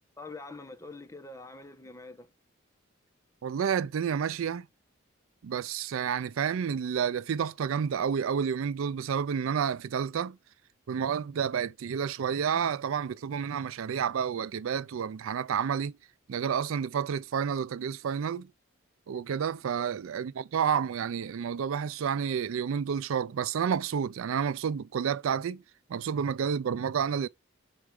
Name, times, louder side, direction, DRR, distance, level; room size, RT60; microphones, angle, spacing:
voice 1, 0.2-2.3 19.8-19.9, left 3 dB, 15° left, 1.0 m, -45 dB
voice 2, 3.4-4.7 5.4-10.4 10.9-16.0 16.3-18.5 19.1-25.6 25.9-27.3, right 7 dB, 75° right, 0.4 m, -30 dB
4.8 x 4.5 x 4.9 m
head